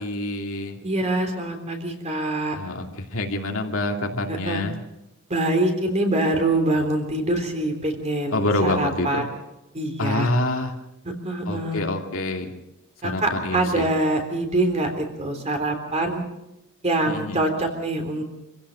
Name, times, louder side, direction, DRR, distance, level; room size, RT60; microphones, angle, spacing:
voice 1, 0.0-0.8 2.6-4.8 8.3-9.2 10.0-10.8 11.5-12.5 13.0-13.9 17.1-17.4, left 2 dB, 65° left, 2 dB, 2.5 m, -26 dB
voice 2, 0.8-2.6 4.3-4.6 5.3-9.2 9.7-10.3 11.2-11.8 13.0-16.2 16.8-18.2, right 1 dB, 30° right, 4 dB, 3.5 m, -24 dB
26.5 x 16.0 x 6.4 m, 0.90 s
head